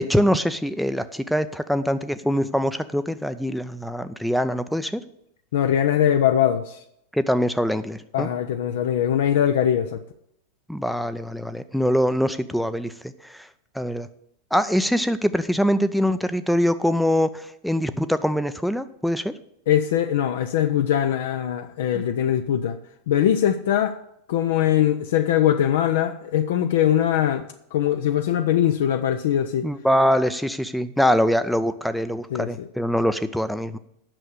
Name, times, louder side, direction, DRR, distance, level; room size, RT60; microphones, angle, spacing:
voice 1, 0.0-5.0 7.1-8.3 10.7-12.9 13.2-13.4 13.8-14.1 14.5-19.3 29.6-33.8, equal, ahead, 0.5 m, -23 dB
voice 2, 5.5-6.8 8.1-10.0 19.7-22.8 23.1-23.9 24.3-27.4 27.7-29.7 32.3-32.7, left 10 dB, 55° left, 0.5 m, -21 dB
8.9 x 6.6 x 6.6 m
figure-of-eight pair, 90°, 0 cm